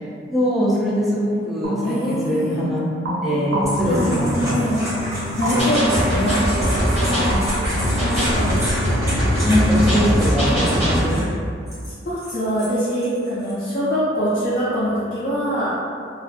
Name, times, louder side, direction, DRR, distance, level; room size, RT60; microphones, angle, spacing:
voice 1, 0.3-2.8 3.2-4.6 5.5-5.6 9.4-11.2, equal, ahead, -8 dB, 0.5 m, -22 dB
sound 1, 1.6-9.2, equal, 85° right, 0.5 m, -30 dB
voice 2, 1.8-2.6 3.8-4.8 5.4-7.4 8.1-8.6 12.0-15.8, equal, 50° left, -12 dB, 0.6 m, -24 dB
sound 2, 3.6-11.2 11.7-13.5, equal, 15° right, 0.8 m, -28 dB
sound 3, 5.6-11.1, equal, 35° right, 1.1 m, -21 dB
2.4 x 2.2 x 2.5 m, 2.3 s
head